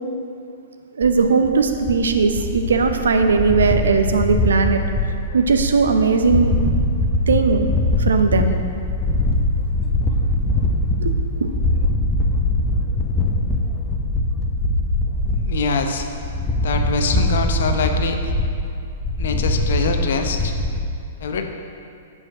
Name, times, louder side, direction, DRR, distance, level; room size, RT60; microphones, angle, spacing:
sound 1, 1.0-20.8, left 1 dB, 15° left, 0.9 m, -22 dB
voice 1, 1.0-4.8 5.3-6.6 7.3-7.7 8.0-8.5 11.0-11.1 11.4-11.5, right 4 dB, 75° right, 7 dB, 0.6 m, -18 dB
voice 2, 15.4-16.1 16.6-18.3 19.2-20.5 21.2-21.4, left 4 dB, 65° left, 5 dB, 0.7 m, -24 dB
6.4 x 5.0 x 6.1 m, 2.4 s
hypercardioid pair, 115°, 0 cm